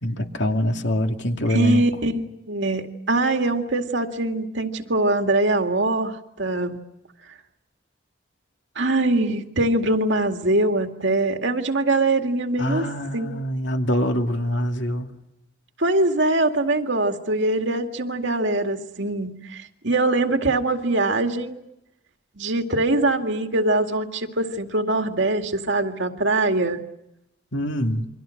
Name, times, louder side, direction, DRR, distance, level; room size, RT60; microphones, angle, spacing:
voice 1, 0.0-1.8 12.6-15.1 27.5-28.1, equal, 70° left, 2.4 m, -24 dB
voice 2, 1.5-6.8 8.8-12.9 13.1-13.4 15.8-21.6 22.4-26.8, right 2 dB, 75° right, 2.2 m, -23 dB
29.0 x 24.0 x 6.5 m
head